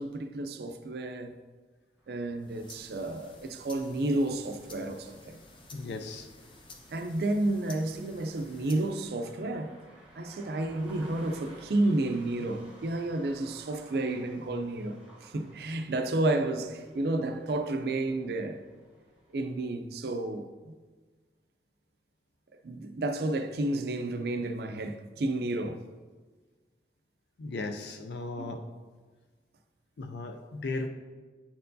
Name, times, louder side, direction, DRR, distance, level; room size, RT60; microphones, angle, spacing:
voice 1, 0.0-1.3 2.1-5.4 6.9-9.8 10.2-18.6 19.3-20.7 22.5-25.8 28.4-28.6, right 2 dB, 60° right, 0.4 m, -31 dB
sound 1, 2.0-19.6, right 1 dB, 5° right, 0.9 m, -57 dB
sound 2, 2.3-9.0, left 3 dB, 30° left, 0.6 m, -53 dB
voice 2, 5.7-6.3 27.4-28.6 30.0-30.9, left 3 dB, 75° left, 0.5 m, -36 dB
9.1 x 4.3 x 2.7 m
head